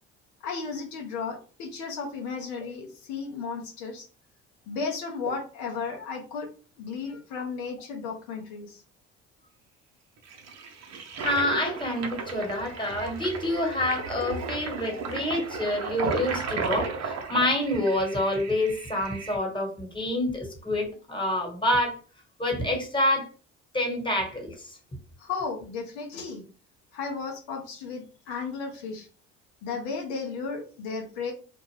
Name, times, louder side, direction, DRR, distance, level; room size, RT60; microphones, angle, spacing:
voice 1, 0.4-4.1 4.7-6.5 6.8-8.8 25.2-26.4 26.9-29.1 29.6-31.3, left 4 dB, 80° left, 2 dB, 0.7 m, -34 dB
Toilet flush, 10.3-19.4, right 4 dB, 50° right, 0.7 m, -34 dB
voice 2, 11.2-22.0 22.4-23.3 23.7-24.8, left 1 dB, 15° left, 1 dB, 1.3 m, -27 dB
2.5 x 2.1 x 3.2 m, 0.38 s
hypercardioid pair, 60°, 34 cm